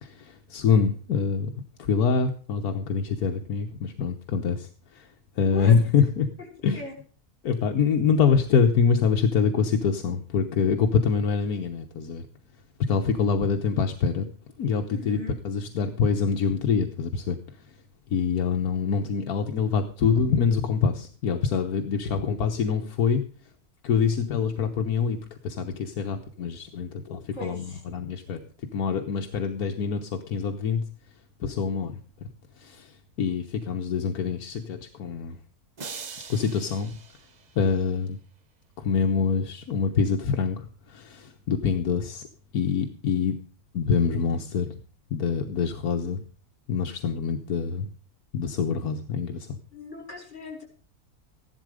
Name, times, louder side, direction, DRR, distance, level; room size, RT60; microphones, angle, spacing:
voice 1, 0.0-6.3 6.6-6.8 7.4-12.3 12.8-14.3 14.6-17.8 18.1-23.5 23.8-30.9 31.4-32.3 32.5-35.4 36.3-37.0 37.5-38.2 38.8-42.3 42.5-43.4 43.7-44.8 45.1-46.2 46.7-47.9 48.3-49.6, left 6 dB, 80° left, 4 dB, 1.6 m, -25 dB
voice 2, 5.4-5.8 6.4-6.5 6.7-6.9 14.9-15.3 27.3-27.8 49.7-50.6, left 2 dB, 50° left, 2 dB, 5.1 m, -39 dB
sound 1, 35.8-38.1, right 5 dB, 35° right, 0.7 m, -42 dB
14.5 x 11.5 x 5.0 m, 0.40 s
omnidirectional pair, 1.6 m